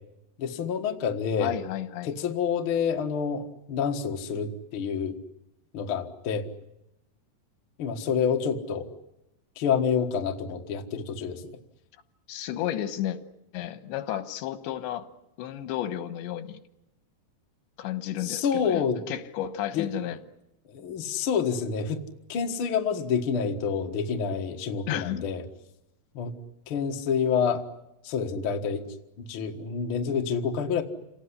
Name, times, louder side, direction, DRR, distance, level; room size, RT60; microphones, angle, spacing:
voice 1, 0.4-1.5 2.0-5.2 5.7-6.5 7.8-8.9 9.6-11.4 18.2-19.0 19.7-19.9 20.7-22.0 22.3-25.4 26.1-26.3 26.7-27.6 28.0-28.9 29.2-30.8, left 6 dB, 60° left, 3 dB, 1.4 m, -28 dB
voice 2, 1.4-2.2 12.3-13.2 13.5-15.1 15.4-16.6 17.8-20.2 24.9-25.3, left 11 dB, 90° left, 10 dB, 3.5 m, -32 dB
28.0 x 18.5 x 10.0 m, 0.92 s
omnidirectional pair, 4.9 m